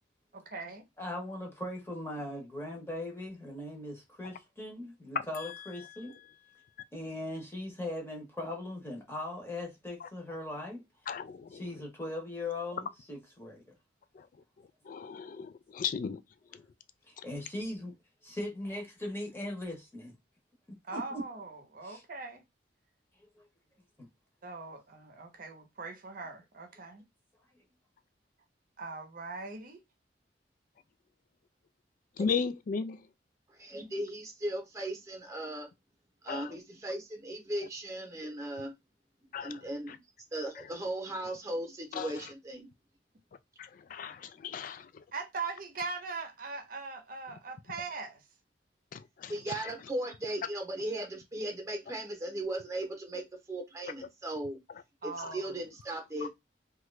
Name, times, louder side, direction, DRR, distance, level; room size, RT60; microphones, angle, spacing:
voice 1, 0.3-0.8 20.8-22.4 24.4-27.0 28.8-29.8 45.1-48.2 55.0-55.6, right 4 dB, 50° right, 0.7 m, -41 dB
voice 2, 1.0-6.1 6.9-10.8 11.5-13.6 17.1-17.9 18.2-20.1 20.9-21.2 21.8-22.0 23.4-23.5, left 1 dB, 15° left, 0.9 m, -39 dB
voice 3, 11.1-11.6 14.2-14.3 14.9-16.2 32.2-33.0 36.3-36.5 39.3-39.6 41.9-42.1 43.6-45.0 48.9-49.7 55.2-55.3 56.2-56.3, left 6 dB, 45° left, 0.3 m, -36 dB
voice 4, 33.6-35.7 36.2-38.7 39.4-40.0 40.3-42.7 49.3-54.6 55.0-56.3, right 1 dB, 15° right, 0.9 m, -37 dB
2.9 x 2.4 x 3.1 m
head